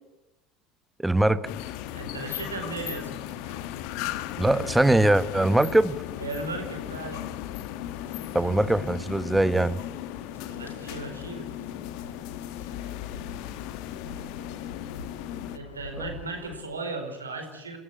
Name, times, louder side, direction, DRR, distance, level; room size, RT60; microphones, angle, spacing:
voice 1, 1.0-1.4 4.4-6.0 8.3-9.8, right 1 dB, 5° right, 15 dB, 1.1 m, -22 dB
Bird, 1.2-16.6, left 3 dB, 75° left, 2.4 m, -49 dB
sound 1, 1.4-15.6, left 12 dB, 55° left, 1.2 m, -36 dB
voice 2, 1.9-3.1 3.4-3.6 6.2-7.3 10.5-11.5 15.5-17.8, right 3 dB, 80° right, 4 dB, 4.8 m, -36 dB
28.0 x 14.0 x 9.8 m, 0.93 s
figure-of-eight pair, 70°, 0 cm